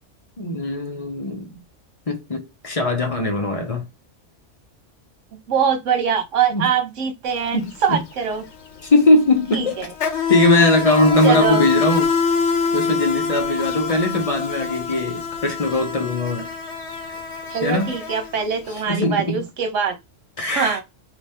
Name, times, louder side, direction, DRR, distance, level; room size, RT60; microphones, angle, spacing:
voice 1, 0.4-1.6 2.1-3.9 6.5-6.7 7.5-8.0 8.8-9.8 10.3-12.1 12.7-16.5 17.6-17.9 18.9-19.4 20.4-20.8, left 2 dB, 35° left, 0.8 m, -20 dB
voice 2, 5.5-8.4 9.5-9.9 11.2-11.7 17.5-20.0 20.6-20.8, right 7 dB, 75° right, 1.2 m, -23 dB
Insect, 7.3-7.5 7.7-18.7, left 5 dB, 65° left, 1.1 m, -25 dB
3.0 x 2.8 x 3.4 m
omnidirectional pair, 1.3 m